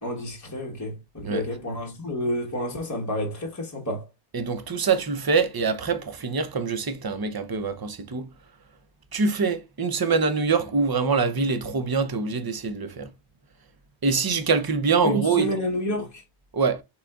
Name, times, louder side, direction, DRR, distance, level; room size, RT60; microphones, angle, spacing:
voice 1, 0.0-4.1 15.0-16.2, equal, 15° left, 0.8 m, -29 dB
voice 2, 4.3-8.3 9.1-13.1 14.0-15.5 16.5-16.8, right 5 dB, 30° right, 0.4 m, -24 dB
5.7 x 3.9 x 2.3 m
omnidirectional pair, 1.2 m